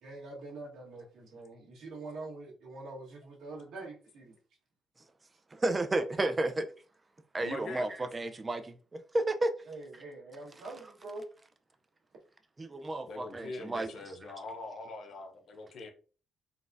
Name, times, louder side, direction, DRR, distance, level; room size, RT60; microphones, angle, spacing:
voice 1, 0.0-4.3 9.7-11.2, right 2 dB, 75° right, 1.4 m, -45 dB
voice 2, 5.5-6.7 7.3-9.5 12.6-13.9, right 2 dB, 25° right, 0.5 m, -32 dB
voice 3, 7.4-7.9 13.1-15.9, left 2 dB, 60° left, 0.7 m, -42 dB
4.0 x 2.3 x 2.6 m
cardioid pair, 90°, 0 cm